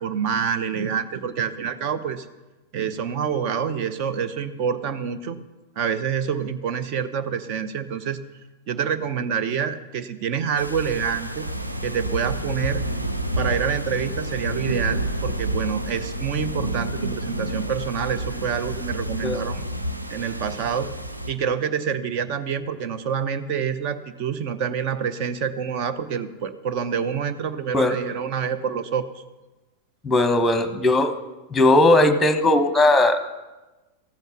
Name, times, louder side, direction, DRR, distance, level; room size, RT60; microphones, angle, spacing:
voice 1, 0.0-2.3 2.7-5.4 5.8-8.2 8.7-11.5 11.8-12.8 13.4-19.6 20.1-20.9 21.3-29.1, right 7 dB, 45° right, 11 dB, 0.8 m, -27 dB
sound 1, 10.6-21.3, right 1 dB, 85° right, 0.8 m, -29 dB
voice 2, 30.0-31.1 31.5-33.2, left 2 dB, 10° left, 9 dB, 1.1 m, -18 dB
14.5 x 7.9 x 6.0 m, 1.1 s
figure-of-eight pair, 90°, 0 cm